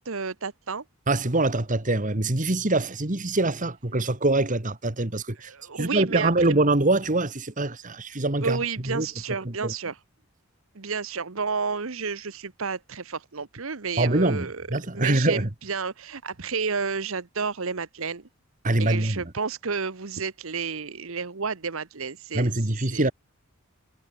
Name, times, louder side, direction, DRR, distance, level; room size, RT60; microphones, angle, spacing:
voice 1, 0.0-0.8 5.4-6.6 8.4-10.0 10.7-14.7 14.9-18.2 18.8-23.1, right 5 dB, 65° right, 1.1 m, -31 dB
voice 2, 1.1-8.6 8.9-9.1 9.5-9.7 14.0-15.5 18.6-19.2 22.3-23.1, right 2 dB, 35° right, 1.8 m, -24 dB
head